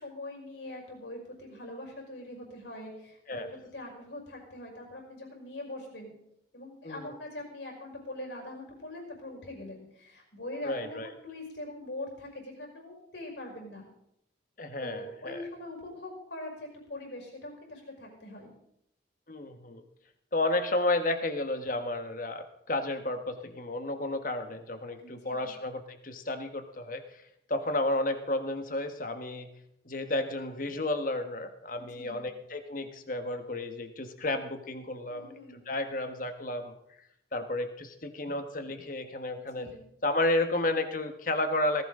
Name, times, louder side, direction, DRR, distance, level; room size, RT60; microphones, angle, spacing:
voice 1, 0.0-6.2 6.5-13.9 14.8-18.5 25.0-25.5 31.8-32.2 35.1-35.6 39.3-39.8, left 1 dB, 70° left, 1 dB, 5.6 m, -43 dB
voice 2, 10.6-11.1 14.6-15.4 19.3-19.8 20.3-27.0 27.5-29.5 29.8-35.3 35.7-36.7 37.3-39.7 40.0-41.8, left 2 dB, 45° left, 7 dB, 1.5 m, -32 dB
18.0 x 16.0 x 3.8 m, 0.77 s
head